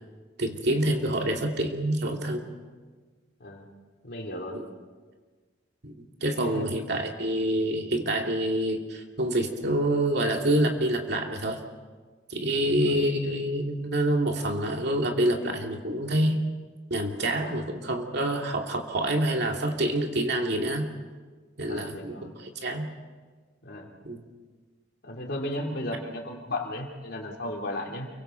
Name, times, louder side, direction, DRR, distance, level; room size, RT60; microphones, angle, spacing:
voice 1, 0.4-2.4 4.5-4.7 5.8-5.9 6.2-11.6 12.3-16.4 16.9-20.9 21.6-22.9 24.0-24.2, right 1 dB, 60° right, 2 dB, 2.5 m, -27 dB
voice 2, 4.0-4.6 6.3-6.8 12.5-13.0 17.4-17.6 18.1-18.2 21.7-22.4 23.6-23.9 25.0-28.1, left 1 dB, 60° left, 1 dB, 3.2 m, -35 dB
29.0 x 24.0 x 4.6 m, 1.4 s
head